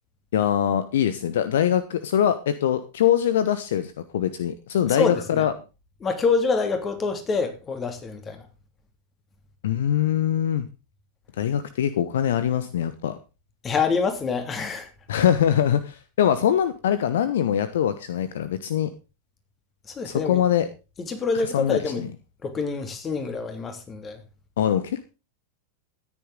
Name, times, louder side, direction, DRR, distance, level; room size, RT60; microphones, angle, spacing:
voice 1, 0.3-5.5 9.6-10.7 11.4-13.2 15.1-18.9 20.0-20.7 21.5-22.1 24.6-25.0, left 10 dB, 60° left, 1.0 m, -23 dB
voice 2, 4.9-5.4 6.0-8.4 13.6-14.9 19.9-20.4 21.0-22.1 22.4-24.2, left 4 dB, 20° left, 3.1 m, -26 dB
14.0 x 10.0 x 3.7 m
figure-of-eight pair, 90°, 0 cm